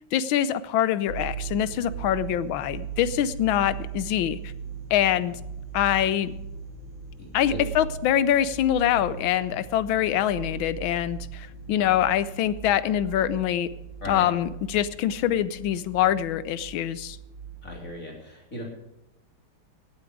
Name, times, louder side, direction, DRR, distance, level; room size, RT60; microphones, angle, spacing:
voice 1, 0.1-4.5 4.9-5.4 5.7-6.3 7.3-13.7 14.1-17.2, left 11 dB, 75° left, 15 dB, 1.4 m, -24 dB
sound 1, 1.1-17.8, right 7 dB, 90° right, 4.3 m, -39 dB
voice 2, 7.2-7.6 11.6-11.9 14.0-14.3 17.6-18.7, left 1 dB, 40° left, -1 dB, 3.7 m, -38 dB
17.0 x 8.6 x 4.9 m, 0.90 s
omnidirectional pair, 2.3 m